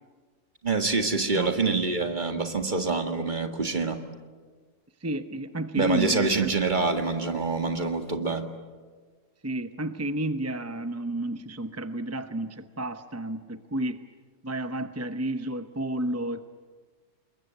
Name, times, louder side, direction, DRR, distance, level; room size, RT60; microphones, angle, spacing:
voice 1, 0.6-4.0 5.8-8.5, right 4 dB, 40° right, 6 dB, 2.0 m, -26 dB
voice 2, 1.1-1.6 5.0-6.5 9.4-14.0 14.4-16.5, right 1 dB, 15° right, 9 dB, 0.7 m, -31 dB
28.0 x 22.0 x 9.3 m, 1.5 s
omnidirectional pair, 1.3 m